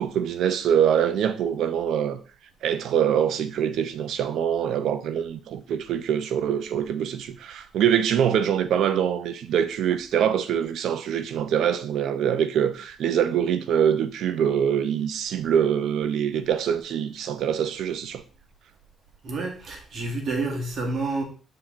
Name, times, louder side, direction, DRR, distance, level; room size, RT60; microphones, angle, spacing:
voice 1, 0.0-2.2 2.6-18.2, right 9 dB, 75° right, 0.7 m, -24 dB
voice 2, 19.2-21.2, right 3 dB, 60° right, 1.9 m, -29 dB
7.6 x 3.9 x 4.4 m
cardioid pair, 90°, 0 cm